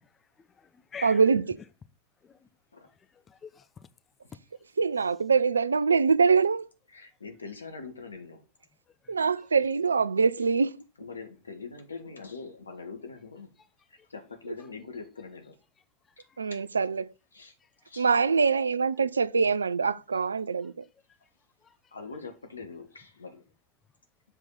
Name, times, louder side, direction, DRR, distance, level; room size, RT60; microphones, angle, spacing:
voice 1, 0.4-1.2 2.2-2.4 3.1-3.9 9.0-9.1 16.3-16.4 21.6-21.7, left 6 dB, 20° left, 0.6 m, -46 dB
voice 2, 1.0-1.4 4.8-6.7 9.1-10.8 16.4-17.1 18.0-20.9, right 5 dB, 75° right, 0.4 m, -24 dB
voice 3, 6.9-8.4 11.0-13.5 14.1-15.5 17.3-17.5 17.8-18.1 21.9-23.4, left 4 dB, 75° left, 1.5 m, -43 dB
7.4 x 5.0 x 4.0 m
figure-of-eight pair, 90°, 0 cm